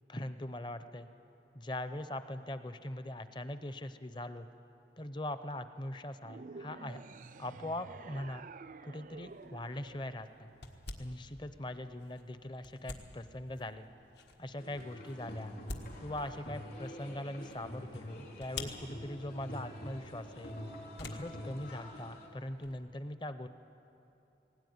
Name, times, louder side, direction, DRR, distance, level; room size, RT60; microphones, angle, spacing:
voice 1, 0.1-1.1 1.5-4.5 5.0-7.0 7.4-8.5 8.8-10.5 11.0-13.9 14.4-15.6 16.0-20.6 21.0-23.5, left 1 dB, 25° left, 11 dB, 0.7 m, -41 dB
sound 1, 6.2-10.7, right 4 dB, 45° right, 0.4 m, -50 dB
sound 2, 9.3-22.8, left 3 dB, 75° left, 1.7 m, -50 dB
sound 3, 14.6-22.3, left 1 dB, 60° left, 3.6 m, -46 dB
18.0 x 18.0 x 9.5 m, 2.8 s
head